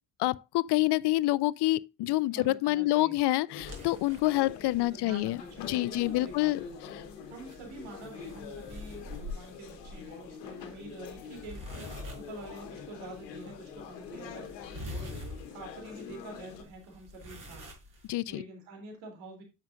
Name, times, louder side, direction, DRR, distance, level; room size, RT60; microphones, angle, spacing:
voice 1, 0.2-6.6 6.9-7.0 18.1-18.4, left 17 dB, 55° left, 0.5 m, -27 dB
voice 2, 2.3-3.2 4.8-6.7 7.3-11.9 12.1-14.4 15.5-19.4, right 2 dB, 75° right, 3.4 m, -47 dB
sound 1, 3.5-16.6, left 7 dB, 90° left, 1.1 m, -45 dB
sound 2, 3.6-18.1, left 1 dB, 40° right, 4.6 m, -46 dB
9.5 x 6.5 x 2.5 m
hypercardioid pair, 45°, 48 cm